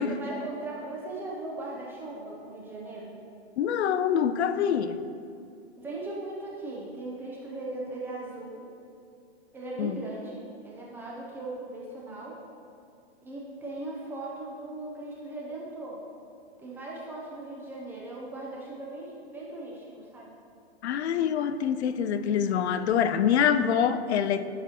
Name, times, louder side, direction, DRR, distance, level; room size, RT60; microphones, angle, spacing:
voice 1, 0.0-3.2 5.8-8.7 9.5-12.4 13.2-16.0 16.6-20.3, right 2 dB, 5° right, 0.4 m, -38 dB
voice 2, 3.6-5.0 9.8-9.9 20.8-24.5, left 8 dB, 75° left, 0.5 m, -25 dB
11.5 x 4.8 x 2.8 m
hypercardioid pair, 150°, 33 cm